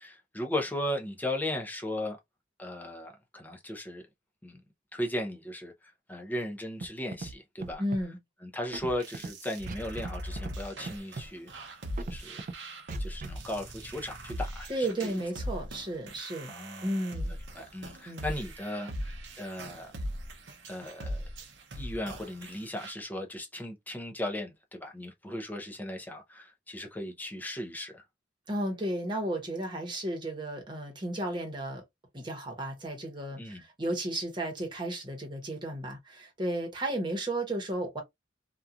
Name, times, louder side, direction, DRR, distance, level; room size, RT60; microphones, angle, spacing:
voice 1, 0.0-2.2 2.6-4.1 4.4-4.6 4.9-5.7 6.1-7.8 8.4-11.5 12.1-12.5 13.0-15.2 16.5-16.9 17.5-19.9 20.7-21.3 21.8-28.0 33.4-33.6, left 1 dB, 10° left, 0.6 m, -37 dB
Scratching (performance technique), 6.8-6.9 7.1-7.3 7.6-8.0 8.7-9.3 9.7-10.1 10.4-10.6 10.8-11.3 12.0-12.5 12.9-13.3, right 3 dB, 45° right, 0.4 m, -38 dB
voice 2, 7.8-8.2 14.7-16.6 16.8-17.3 18.1-18.2 28.5-31.8 32.1-38.0, right 1 dB, 25° right, 1.0 m, -33 dB
sound 1, 8.7-22.9, equal, 70° right, 0.7 m, -40 dB
2.8 x 2.4 x 2.4 m
head